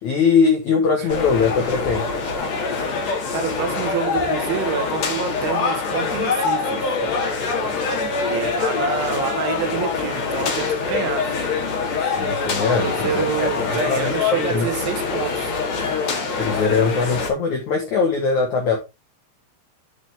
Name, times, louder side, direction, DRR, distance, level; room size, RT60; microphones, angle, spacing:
voice 1, 0.0-2.0 12.0-14.7 16.3-18.8, left 5 dB, 70° left, 1.8 m, -21 dB
sound 1, 1.1-17.3, left 4 dB, 55° left, 2.0 m, -24 dB
voice 2, 3.3-6.8 8.3-11.3 12.8-15.5, right 7 dB, 75° right, 3.5 m, -27 dB
12.0 x 5.0 x 3.4 m
omnidirectional pair, 5.8 m